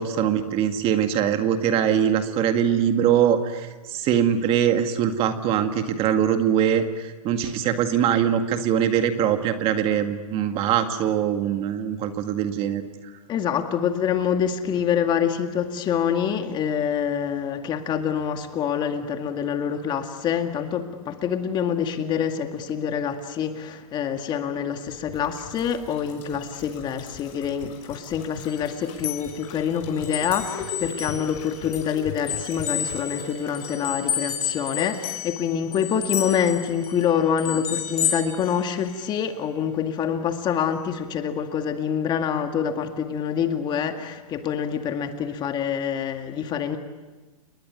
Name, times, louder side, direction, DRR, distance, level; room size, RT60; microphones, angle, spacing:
voice 1, 0.0-12.8, right 9 dB, 30° right, 7 dB, 2.0 m, -22 dB
voice 2, 13.3-46.8, left 8 dB, 25° left, 6 dB, 2.0 m, -26 dB
sound 1, 24.9-35.2 35.5-35.6, left 7 dB, 40° left, 6.2 m, -40 dB
sound 2, 28.5-31.9 32.3-39.2, left 9 dB, 75° left, 4.4 m, -31 dB
29.5 x 20.5 x 9.5 m, 1.2 s
hypercardioid pair, 145°, 19 cm